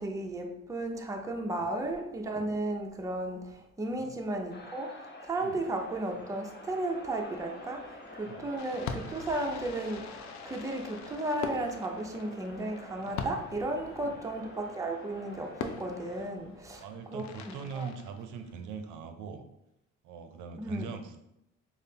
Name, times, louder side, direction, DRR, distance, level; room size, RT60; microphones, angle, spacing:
voice 1, 0.0-3.4 3.8-4.9 5.2-7.9 8.1-10.1 10.4-16.8 17.1-17.9 20.6-20.9, right 2 dB, 10° right, 2 dB, 0.5 m, -34 dB
sound 1, 4.5-16.3, left 2 dB, 35° left, 0.9 m, -48 dB
Fireworks, 8.6-18.8, left 6 dB, 65° left, 0.5 m, -43 dB
voice 2, 16.8-19.4 20.0-21.2, right 6 dB, 80° right, 7 dB, 0.5 m, -42 dB
5.3 x 2.0 x 2.7 m, 0.84 s
cardioid pair, 90°, 30 cm